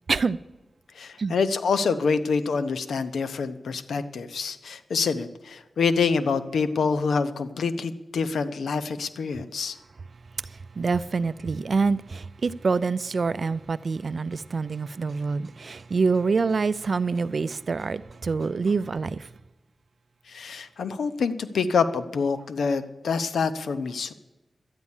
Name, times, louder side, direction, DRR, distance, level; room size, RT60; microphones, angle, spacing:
voice 1, 1.0-9.8 20.3-24.1, left 5 dB, 85° left, 0.7 m, -26 dB
voice 2, 10.8-19.2, right 4 dB, 55° right, 0.5 m, -26 dB
12.5 x 9.5 x 7.2 m
wide cardioid pair, 85°, 0 cm